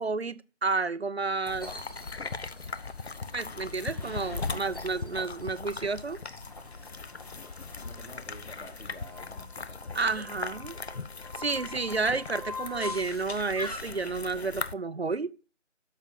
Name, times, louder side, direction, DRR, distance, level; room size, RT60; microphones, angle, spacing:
voice 1, 0.0-1.7 3.3-6.2 9.9-10.8 11.4-15.3, right 4 dB, 55° right, 0.6 m, -31 dB
sound 1, 1.5-14.7, left 4 dB, 60° left, 0.6 m, -39 dB
sound 2, 1.6-14.3, left 2 dB, 30° left, 1.1 m, -45 dB
voice 2, 7.8-10.3, equal, 75° left, 3.5 m, -49 dB
8.1 x 6.7 x 6.3 m
figure-of-eight pair, 165°, 37 cm